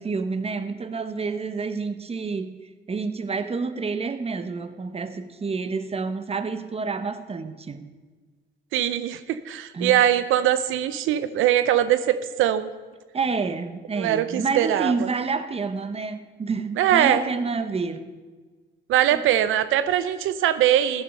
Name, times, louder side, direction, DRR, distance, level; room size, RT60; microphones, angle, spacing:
voice 1, 0.0-2.6 2.9-7.9 9.7-10.0 13.1-18.1 19.1-19.2, right 4 dB, 30° right, 11 dB, 1.0 m, -28 dB
voice 2, 8.7-12.7 14.0-14.9 16.8-17.2 18.9-21.0, right 11 dB, 90° right, 13 dB, 0.6 m, -21 dB
14.5 x 10.5 x 5.5 m, 1.4 s
cardioid pair, 90°, 20 cm